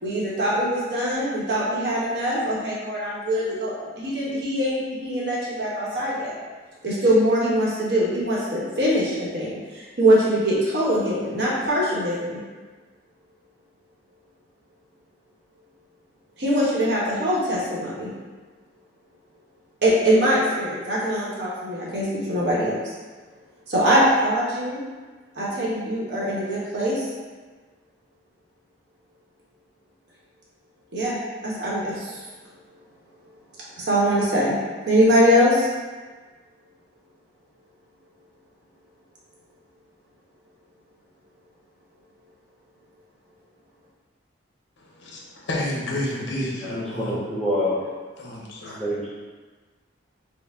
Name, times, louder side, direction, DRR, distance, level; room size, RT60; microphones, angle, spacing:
voice 1, 0.0-6.3 6.8-12.4 16.4-18.1 19.8-22.8 23.7-24.8 25.3-27.1 30.9-31.2 31.4-32.2 33.8-34.5 34.9-35.7, equal, 60° right, -6 dB, 1.0 m, -22 dB
voice 2, 45.1-47.3 48.2-48.8, left 1 dB, 75° left, -2 dB, 0.8 m, -30 dB
voice 3, 46.3-47.8 48.8-49.1, equal, ahead, -10 dB, 0.5 m, -27 dB
4.5 x 2.1 x 3.5 m, 1.4 s
head